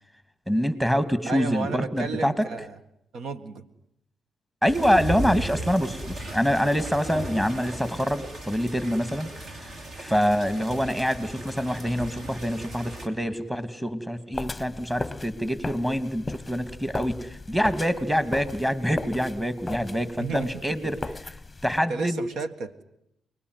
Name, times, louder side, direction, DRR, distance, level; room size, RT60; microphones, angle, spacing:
voice 1, 0.5-2.4 4.6-9.3 9.6-9.7 10.0-21.0 21.6-22.2, equal, 5° right, 12 dB, 2.6 m, -25 dB
voice 2, 1.3-2.8 3.1-3.7 20.2-20.5 21.9-22.8, right 4 dB, 75° right, 11 dB, 1.9 m, -33 dB
sound 1, 4.7-13.1, right 1 dB, 55° right, 5.3 m, -36 dB
sound 2, 14.3-21.8, left 3 dB, 15° left, 1.0 m, -37 dB
29.0 x 21.0 x 9.7 m, 0.77 s
cardioid pair, 95°, 0 cm